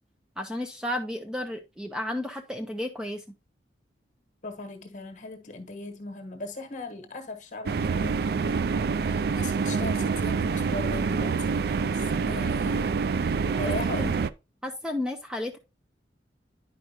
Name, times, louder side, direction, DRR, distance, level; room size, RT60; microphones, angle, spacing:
voice 1, 0.4-3.2 13.8-14.1 14.6-15.6, left 1 dB, 5° right, 0.5 m, -32 dB
voice 2, 4.4-8.3 9.1-14.2, left 2 dB, 45° left, 1.2 m, -38 dB
sound 1, 7.7-14.3, right 5 dB, 60° right, 0.3 m, -26 dB
9.9 x 5.0 x 2.9 m
head